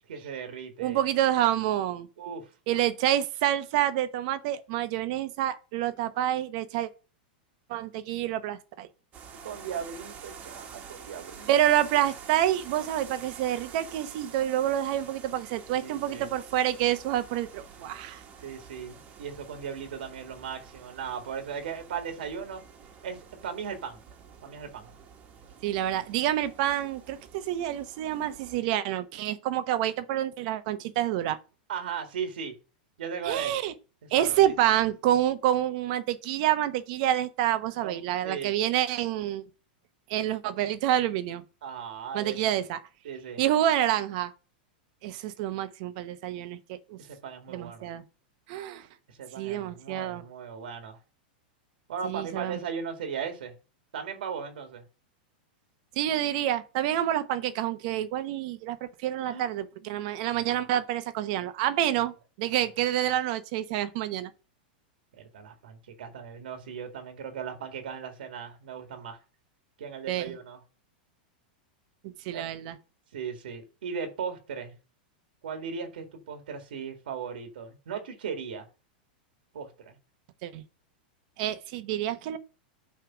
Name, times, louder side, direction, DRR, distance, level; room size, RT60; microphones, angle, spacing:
voice 1, 0.1-1.0 2.2-2.5 9.3-11.6 15.8-16.3 18.4-22.6 23.0-24.0 24.4-24.9 31.7-32.5 33.0-33.5 34.0-34.8 37.8-38.6 41.6-42.4 43.0-43.4 47.0-47.9 49.1-51.0 51.9-53.5 53.9-54.8 59.3-59.4 59.8-60.0 60.3-60.4 61.9-62.0 65.1-69.2 69.8-70.6 72.3-72.4 73.1-74.7 75.4-78.7 79.5-80.0, right 6 dB, 85° right, 1.9 m, -37 dB
voice 2, 0.8-2.1 2.7-6.9 7.7-8.9 11.5-18.2 25.6-31.4 33.2-33.7 34.1-39.4 40.1-41.4 42.1-42.8 43.4-44.3 45.0-47.0 47.5-48.0 48.5-48.9 49.4-50.2 52.0-52.6 56.0-64.3 70.1-70.3 72.0-72.7 80.4-80.6 81.4-82.4, right 12 dB, 50° right, 0.9 m, -28 dB
sound 1, 9.1-28.6, right 6 dB, 30° right, 1.4 m, -48 dB
9.3 x 3.4 x 6.0 m
supercardioid pair, 145°, 5 cm